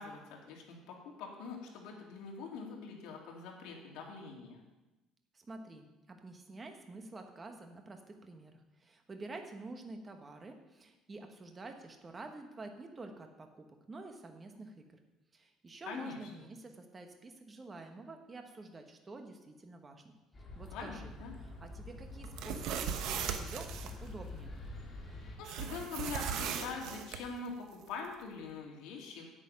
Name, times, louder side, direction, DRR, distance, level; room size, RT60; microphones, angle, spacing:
voice 1, 0.0-4.6 15.9-16.3 20.7-21.3 25.4-29.2, left 4 dB, 75° left, 0 dB, 2.5 m, -44 dB
voice 2, 5.3-15.0 15.3-20.1 20.5-21.1 21.4-24.5, right 2 dB, 20° right, 5 dB, 1.1 m, -49 dB
sound 1, 20.3-25.4, left 2 dB, 20° left, 2.2 m, -47 dB
sound 2, 22.2-23.9 25.4-27.2, right 7 dB, 65° right, 1.0 m, -38 dB
9.0 x 8.7 x 5.7 m, 1.0 s
cardioid pair, 150°, 0 cm